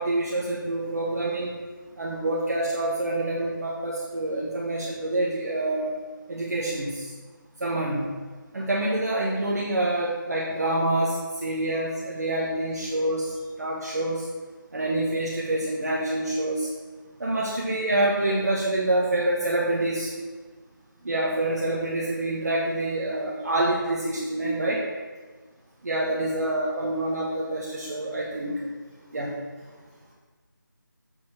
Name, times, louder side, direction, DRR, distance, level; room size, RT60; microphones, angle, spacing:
voice 1, 0.0-1.6 2.0-5.9 6.3-7.1 7.6-8.1 8.5-14.2 14.7-16.7 17.2-20.1 21.0-24.8 25.8-28.7 29.1-29.3, right 1 dB, 50° right, -5 dB, 1.4 m, -27 dB
voice 2, 29.8-30.1, equal, 20° right, -9 dB, 2.6 m, -59 dB
7.1 x 5.2 x 6.0 m, 1.4 s
figure-of-eight pair, 165°, 11 cm